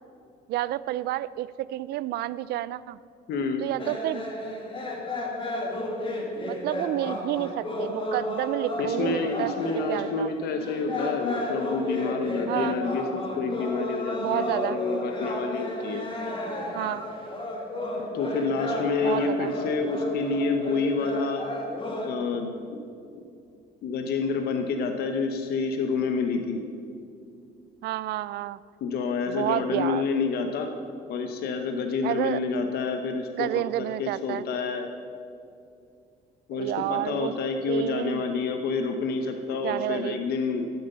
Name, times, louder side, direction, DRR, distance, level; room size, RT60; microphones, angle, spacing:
voice 1, 0.5-3.0 3.6-4.2 6.5-9.5 9.9-10.3 12.5-12.8 14.2-14.8 16.7-17.0 19.0-19.5 27.8-28.6 29.3-30.1 32.0-32.4 33.4-34.4 36.5-37.3 37.7-38.2 39.6-40.2, right 15 dB, 75° right, 18 dB, 0.4 m, -30 dB
voice 2, 3.3-3.6 8.8-16.1 18.1-21.5 22.0-22.8 23.1-23.2 23.8-26.6 28.8-30.7 31.1-34.9 36.5-40.7, left 4 dB, 70° left, 5 dB, 1.0 m, -28 dB
sound 1, 3.8-22.1, left 1 dB, 30° left, 2.2 m, -32 dB
13.0 x 8.0 x 6.8 m, 2.5 s
cardioid pair, 110°, 17 cm